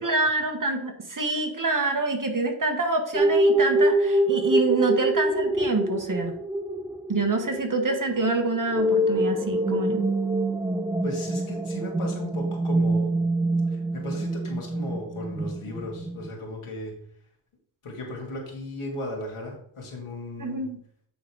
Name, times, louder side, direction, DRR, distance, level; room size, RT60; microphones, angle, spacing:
voice 1, 0.0-6.3 7.1-10.1 20.4-20.8, right 2 dB, 40° right, 4 dB, 1.4 m, -26 dB
sound 1, 3.1-16.3, right 1 dB, 10° right, 0.3 m, -25 dB
voice 2, 11.0-13.2 13.7-16.9 17.8-20.7, left 1 dB, 85° left, -1 dB, 2.5 m, -36 dB
9.3 x 4.0 x 4.6 m, 0.64 s
wide cardioid pair, 75°, 49 cm